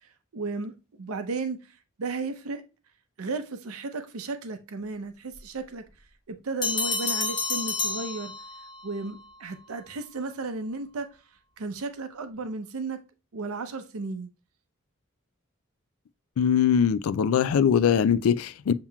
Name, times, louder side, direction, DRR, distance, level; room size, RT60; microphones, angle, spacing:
voice 1, 0.0-2.6 3.2-5.8 6.3-8.3 8.8-11.1 11.6-13.0 13.3-14.3, right 3 dB, 90° right, 0.6 m, -34 dB
Bell, 6.6-8.9, left 4 dB, 20° left, 0.9 m, -29 dB
voice 2, 16.4-18.7, left 7 dB, 80° left, 0.3 m, -22 dB
7.2 x 2.9 x 2.2 m
head